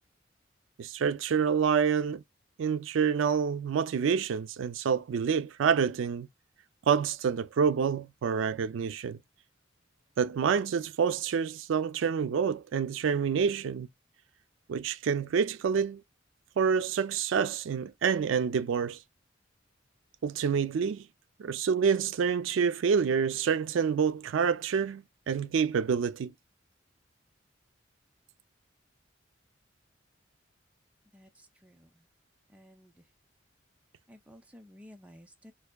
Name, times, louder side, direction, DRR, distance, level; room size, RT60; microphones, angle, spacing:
voice 1, 0.8-2.2 2.6-6.3 6.9-9.2 10.2-13.9 14.7-16.0 16.6-19.0 20.2-21.1 21.4-26.3, right 6 dB, 80° right, 0.4 m, -27 dB
voice 2, 31.1-32.1 32.5-33.0 34.1-35.5, equal, 5° right, 0.5 m, -54 dB
4.6 x 2.4 x 2.2 m
head